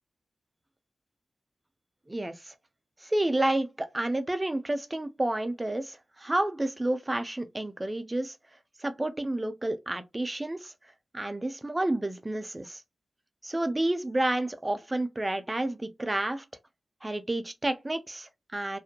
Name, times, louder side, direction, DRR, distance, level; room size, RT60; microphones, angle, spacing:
voice 1, 2.1-2.5 3.0-8.3 8.8-10.7 11.1-12.8 13.4-16.4 17.0-18.8, right 1 dB, 20° right, 0.4 m, -30 dB
2.5 x 2.1 x 2.8 m
wide cardioid pair, 75°, 0 cm